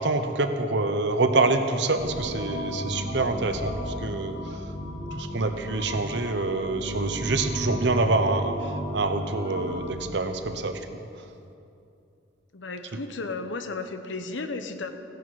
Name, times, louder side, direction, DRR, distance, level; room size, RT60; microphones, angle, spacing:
voice 1, 0.0-4.6 5.1-11.0, right 3 dB, 70° right, 7 dB, 0.9 m, -26 dB
sound 1, 2.0-10.0, equal, 45° left, 1.5 m, -34 dB
voice 2, 12.5-14.9, left 3 dB, 85° left, 8 dB, 0.9 m, -34 dB
15.5 x 10.5 x 4.7 m, 2.6 s
head